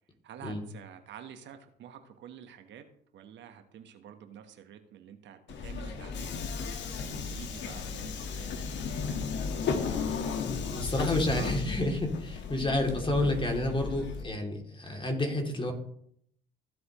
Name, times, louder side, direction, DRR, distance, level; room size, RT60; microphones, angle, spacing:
voice 1, 0.2-2.8 3.1-6.3 7.0-8.7 9.2-10.5 11.1-11.6, right 9 dB, 60° right, 8 dB, 1.3 m, -49 dB
Subway metro underground, 5.5-14.2, left 5 dB, 60° left, 1.6 m, -34 dB
voice 2, 10.6-15.7, left 1 dB, 25° left, 2 dB, 2.8 m, -30 dB
15.5 x 7.9 x 3.1 m, 0.67 s
hypercardioid pair, 55°, 21 cm